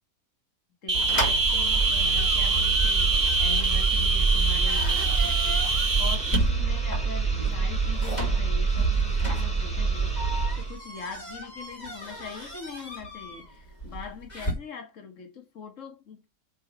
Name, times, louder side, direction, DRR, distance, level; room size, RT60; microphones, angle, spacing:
voice 1, 0.8-16.3, left 6 dB, 60° left, 2.1 m, -42 dB
sound 1, 0.9-14.5, right 1 dB, 30° left, 2.9 m, -34 dB
sound 2, 0.9-6.4, right 3 dB, 25° right, 0.6 m, -25 dB
sound 3, 1.3-10.8, right 4 dB, 5° left, 2.7 m, -27 dB
6.1 x 5.9 x 5.4 m
omnidirectional pair, 1.5 m